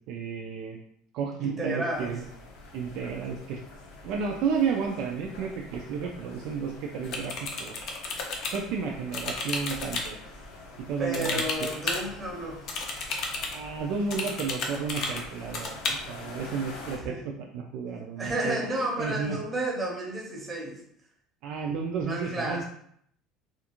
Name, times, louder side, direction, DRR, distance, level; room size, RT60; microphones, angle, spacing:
voice 1, 0.1-0.8 1.1-2.2 2.7-3.6 4.0-7.8 8.5-10.2 10.9-11.4 13.5-19.4 21.4-22.6, right 6 dB, 60° right, 1 dB, 0.3 m, -32 dB
voice 2, 1.4-2.1 11.0-12.6 16.9-17.2 18.2-20.8 22.1-22.6, right 1 dB, 15° right, -3 dB, 0.7 m, -31 dB
sound 1, 1.9-17.0, left 2 dB, 90° left, 0.6 m, -46 dB
sound 2, 7.0-8.6 9.1-10.1 11.1-12.0 12.7-13.6 14.1-15.2 15.5-15.9, left 3 dB, 45° left, 0.5 m, -32 dB
2.4 x 2.4 x 2.9 m, 0.67 s
cardioid pair, 160°, 0 cm